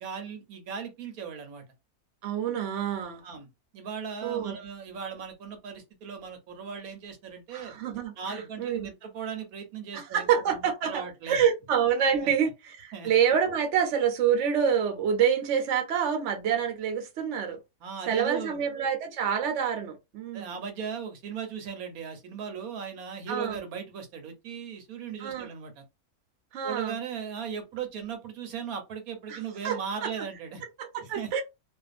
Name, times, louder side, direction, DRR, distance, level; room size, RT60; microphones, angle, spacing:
voice 1, 0.0-1.6 3.2-3.5 3.7-7.7 8.2-11.4 12.2-12.3 12.9-13.1 17.8-18.7 20.3-25.8 26.6-30.6 31.0-31.4, right 6 dB, 75° right, 1.2 m, -38 dB
voice 2, 2.2-3.2 4.2-4.6 7.5-8.1 8.6-8.9 9.9-17.6 18.1-20.5 23.3-23.6 25.2-25.5 26.5-26.9 29.3-29.4 29.6-30.1 30.8-31.4, right 8 dB, 60° right, 0.9 m, -27 dB
2.5 x 2.4 x 2.4 m
omnidirectional pair, 1.6 m